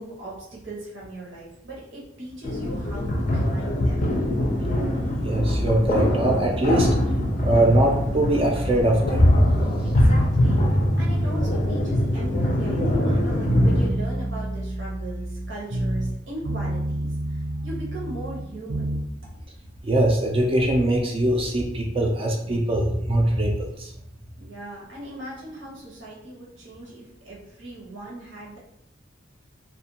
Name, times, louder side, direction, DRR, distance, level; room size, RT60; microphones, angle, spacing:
voice 1, 0.0-4.1 9.8-10.6 11.0-18.9 24.4-28.6, right 1 dB, 80° right, -5 dB, 1.0 m, -39 dB
sound 1, 2.4-13.9, left 1 dB, 40° left, 0.4 m, -23 dB
voice 2, 5.2-6.9 7.4-9.3 13.1-13.2 19.8-23.9, right 1 dB, 30° right, 0 dB, 0.4 m, -22 dB
sound 2, 7.4-10.1 10.4-12.5 12.7-16.2 16.4-19.1, right 1 dB, 55° right, 0.7 m, -28 dB
2.4 x 2.2 x 2.8 m, 0.79 s
head